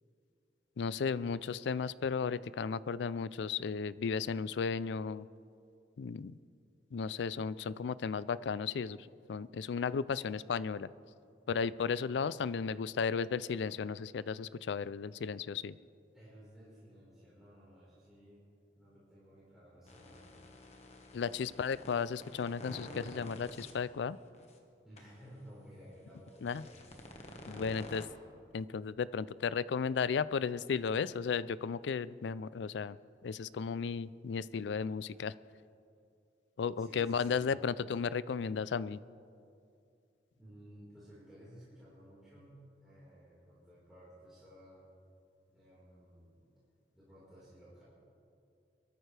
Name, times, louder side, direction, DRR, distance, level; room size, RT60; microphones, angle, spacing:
voice 1, 0.8-5.3 6.0-6.4 6.9-9.0 9.3-10.9 11.5-15.7 21.1-24.2 26.4-26.6 27.5-28.0 28.5-33.0 33.2-35.3 36.6-39.0, left 6 dB, 80° left, 18 dB, 0.4 m, -34 dB
voice 2, 16.1-18.5 18.7-20.4 24.8-26.8 27.4-28.0 36.8-37.6 40.3-44.9 45.5-46.4 46.9-47.8, equal, ahead, -10 dB, 4.4 m, -56 dB
sound 1, 19.9-23.7 24.3-24.5 25.0-25.1 26.3-28.1, left 1 dB, 35° left, 1.4 m, -50 dB
23.5 x 13.5 x 3.3 m, 2.5 s
head